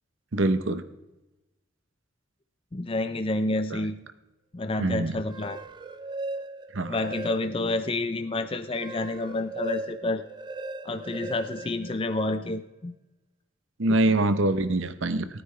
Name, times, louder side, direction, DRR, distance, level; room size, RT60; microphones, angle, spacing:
voice 1, 0.3-0.8 4.8-5.2 6.7-7.0 13.8-15.2, right 2 dB, 75° right, 11 dB, 0.8 m, -24 dB
voice 2, 2.7-4.0 4.5-5.6 6.9-10.2 10.8-12.9 13.9-14.2, left 2 dB, 25° left, 8 dB, 0.5 m, -29 dB
sound 1, 5.1-7.8 8.2-12.5, right 2 dB, 20° right, 0.5 m, -38 dB
18.5 x 9.4 x 3.3 m, 1.0 s
head